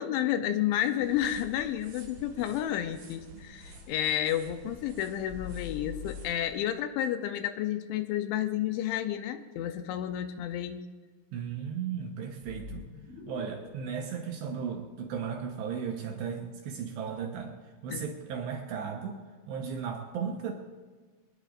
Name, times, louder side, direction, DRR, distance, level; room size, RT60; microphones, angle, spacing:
voice 1, 0.0-10.9 17.9-18.0, left 11 dB, 80° left, 8 dB, 2.8 m, -31 dB
sound 1, 1.0-6.5, right 3 dB, 55° right, 3.8 m, -50 dB
sound 2, 5.3-6.8 12.4-15.5, left 8 dB, 65° left, 5.2 m, -44 dB
voice 2, 11.3-12.8 13.3-17.5 17.8-20.5, right 7 dB, 70° right, 2 dB, 2.9 m, -35 dB
23.0 x 20.0 x 2.5 m, 1.4 s
omnidirectional pair, 5.8 m